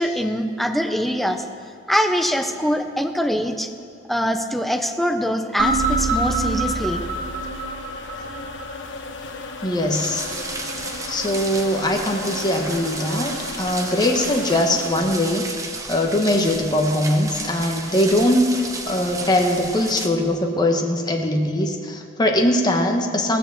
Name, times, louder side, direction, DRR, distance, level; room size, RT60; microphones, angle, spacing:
voice 1, 0.0-1.4 1.9-3.7 4.1-7.0, equal, ahead, 5 dB, 0.8 m, -23 dB
sound 1, 5.6-14.9, left 3 dB, 70° left, 1.2 m, -35 dB
sound 2, 5.6-8.7, right 3 dB, 75° right, 2.9 m, -25 dB
voice 2, 9.6-10.2 11.1-15.4 15.9-18.5 18.9-23.4, left 1 dB, 20° left, 2 dB, 1.3 m, -21 dB
sound 3, 9.9-20.1, right 3 dB, 20° right, 1.1 m, -33 dB
17.0 x 6.7 x 7.4 m, 2.4 s
head